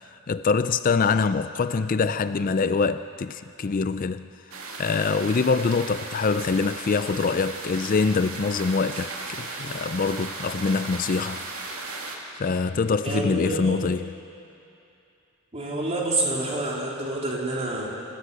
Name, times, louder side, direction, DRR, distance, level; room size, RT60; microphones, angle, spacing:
voice 1, 0.3-4.3 4.8-11.4 12.4-14.1, left 4 dB, 40° left, 0.4 m, -24 dB
sound 1, 4.5-12.2, right 3 dB, 75° right, 2.8 m, -36 dB
voice 2, 13.0-13.8 15.5-17.9, right 1 dB, 30° right, 3.7 m, -28 dB
27.5 x 14.5 x 8.3 m
head